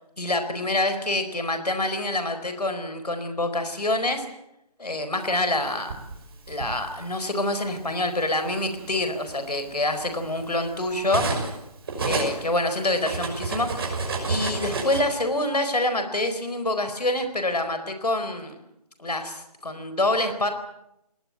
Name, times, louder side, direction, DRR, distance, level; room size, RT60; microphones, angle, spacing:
voice 1, 0.2-4.2 4.8-5.9 6.5-11.3 12.0-13.8 14.3-18.6 19.0-20.5, left 1 dB, 85° left, 8 dB, 4.5 m, -26 dB
Cutlery silverware, 5.5-6.8 7.7-7.9 8.3-11.6 11.9-15.0, right 3 dB, 40° right, 5.9 m, -30 dB
22.0 x 19.5 x 8.9 m, 0.84 s
figure-of-eight pair, 160°, 20 cm